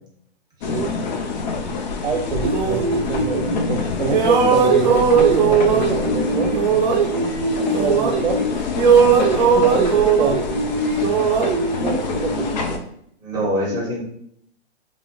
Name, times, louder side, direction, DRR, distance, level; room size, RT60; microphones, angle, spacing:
sound 1, 0.6-12.8, left 4 dB, 45° left, 0.4 m, -27 dB
voice 1, 0.7-1.0 2.0-6.6 7.7-8.4 9.4-10.5 11.8-12.8 13.6-13.9, right 4 dB, 80° right, 4 dB, 0.7 m, -25 dB
sound 2, 2.4-3.8 4.1-8.5 8.8-12.6, right 6 dB, 45° right, 0.6 m, -19 dB
voice 2, 13.2-14.0, equal, 10° right, -3 dB, 0.7 m, -25 dB
2.7 x 2.0 x 2.7 m, 0.68 s
hypercardioid pair, 130°, 33 cm